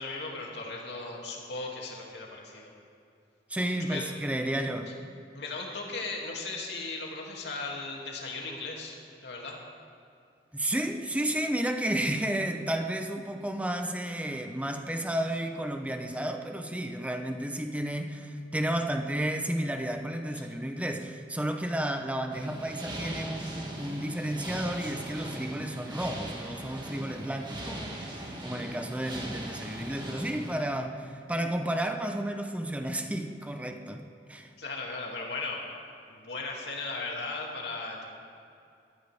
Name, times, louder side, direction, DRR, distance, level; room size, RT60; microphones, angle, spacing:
voice 1, 0.0-2.7 3.8-4.1 5.3-8.9 9.2-9.6 34.6-35.6 36.1-38.0, left 3 dB, 70° left, -2 dB, 2.7 m, -37 dB
voice 2, 3.5-5.0 10.5-28.1 28.4-34.5, right 1 dB, 10° right, 5 dB, 0.9 m, -32 dB
sound 1, 22.3-30.6, right 1 dB, 25° right, 2.1 m, -39 dB
22.0 x 13.5 x 3.6 m, 2.5 s
head